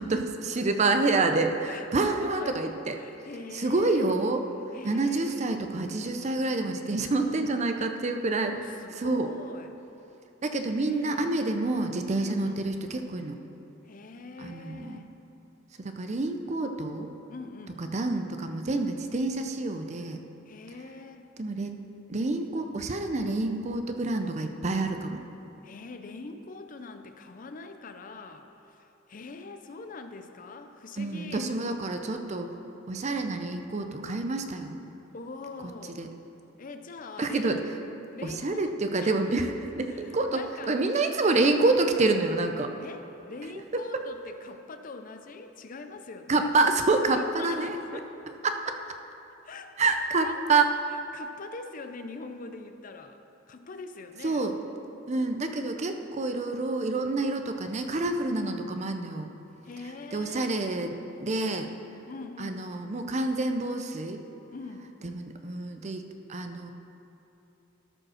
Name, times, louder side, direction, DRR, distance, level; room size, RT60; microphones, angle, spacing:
voice 1, 0.0-3.0 3.5-4.5 4.8-8.5 9.0-9.3 10.4-13.4 14.4-15.0 15.8-17.1 17.8-20.2 21.4-21.8 22.1-25.2 31.0-32.6 32.9-34.8 36.0-36.1 37.2-37.6 38.2-42.7 46.3-47.8 48.4-48.8 49.8-50.7 54.2-54.5 55.1-59.3 60.1-61.7 62.4-64.2 65.0-66.7, right 3 dB, 35° right, 6 dB, 0.5 m, -28 dB
voice 2, 1.7-2.7 2.9-4.3 4.7-5.6 7.2-7.5 8.2-9.7 10.6-11.4 12.2-12.6 13.8-15.1 17.3-17.8 20.5-21.3 25.6-31.5 35.1-36.1 36.6-37.7 38.1-39.1 39.9-40.8 41.2-41.4 42.8-46.5 47.1-48.1 49.4-53.2 53.5-54.5 58.4-58.6 59.6-60.6 62.1-62.6 64.5-64.9, left 3 dB, 40° left, 7 dB, 0.5 m, -43 dB
13.0 x 5.1 x 6.3 m, 2.9 s
head